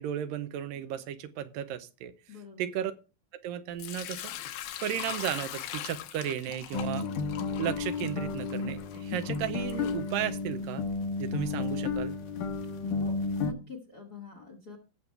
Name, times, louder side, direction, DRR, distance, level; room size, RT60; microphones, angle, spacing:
voice 1, 0.0-2.1 2.6-2.9 3.3-4.3 4.8-7.0 7.6-10.9 11.2-12.2, right 10 dB, 80° right, 12 dB, 2.3 m, -34 dB
voice 2, 2.3-2.7 13.0-14.8, left 5 dB, 45° left, 4 dB, 1.3 m, -46 dB
Sink (filling or washing) / Liquid, 3.8-10.7, left 11 dB, 85° left, 2.7 m, -42 dB
sound 1, 6.7-13.5, left 4 dB, 70° left, 2.3 m, -32 dB
18.0 x 6.8 x 3.3 m, 0.31 s
omnidirectional pair, 4.2 m